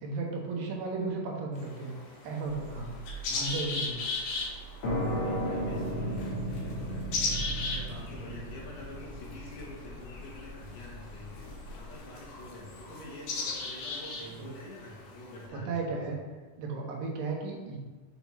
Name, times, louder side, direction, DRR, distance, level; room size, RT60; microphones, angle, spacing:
voice 1, 0.0-2.0 2.2-3.0 3.3-4.1 14.4-14.5 15.7-16.2 16.6-17.8, right 3 dB, 80° right, 0 dB, 2.5 m, -34 dB
sound 1, 1.5-15.5, left 3 dB, 85° left, 3.0 m, -38 dB
Car / Engine starting, 2.4-12.5, right 3 dB, 60° right, 1.3 m, -47 dB
sound 2, 4.8-12.2, equal, 50° left, 1.7 m, -35 dB
voice 2, 5.2-7.1 7.6-11.4 11.7-16.2, left 1 dB, 70° left, -3 dB, 2.5 m, -47 dB
6.9 x 4.5 x 3.0 m, 1.3 s
omnidirectional pair, 4.0 m